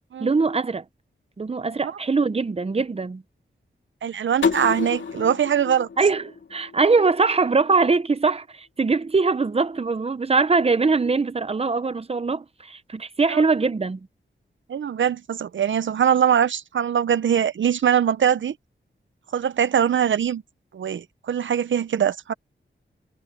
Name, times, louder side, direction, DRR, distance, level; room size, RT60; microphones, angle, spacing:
voice 1, 0.2-0.8 1.4-3.2 6.0-14.0, right 4 dB, 30° right, 0.8 m, -22 dB
voice 2, 4.0-5.9 13.3-13.4 14.7-18.5 19.3-20.4 20.7-22.3, right 8 dB, 80° right, 0.7 m, -22 dB
sound 1, 4.4-7.2, left 5 dB, 80° left, 2.3 m, -29 dB
wide cardioid pair, 110°, 19 cm